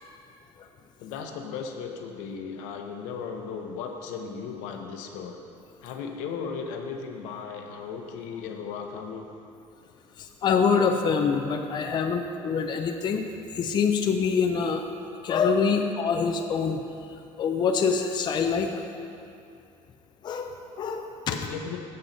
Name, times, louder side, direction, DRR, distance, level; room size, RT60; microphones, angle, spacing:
voice 1, 1.0-5.4 5.8-9.3 21.3-21.8, left 6 dB, 85° left, 4 dB, 0.8 m, -36 dB
voice 2, 10.2-13.2 13.5-14.8 15.2-16.8 17.4-18.7 20.2-21.4, left 5 dB, 40° left, 4 dB, 0.5 m, -25 dB
7.7 x 7.3 x 4.0 m, 2.5 s
cardioid pair, 125°, 12 cm